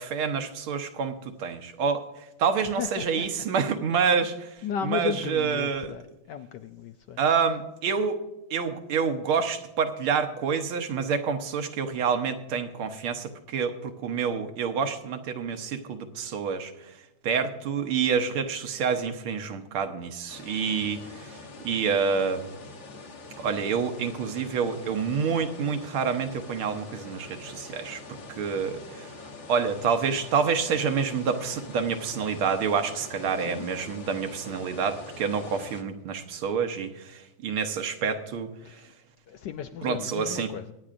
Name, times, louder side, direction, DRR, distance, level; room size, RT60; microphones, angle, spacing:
voice 1, 0.0-2.0 2.4-4.6 4.8-6.0 7.2-8.2 8.5-16.7 17.2-21.3 21.6-22.5 23.4-29.1 29.5-38.5 39.8-40.5, right 6 dB, 80° right, 6 dB, 1.9 m, -28 dB
voice 2, 2.8-3.3 4.6-7.2 33.5-33.7 38.6-38.7 39.3-40.7, left 8 dB, 75° left, 8 dB, 1.0 m, -34 dB
sound 1, 20.3-35.8, left 3 dB, 40° left, 1.2 m, -44 dB
23.5 x 9.5 x 2.5 m, 0.96 s
omnidirectional pair, 2.3 m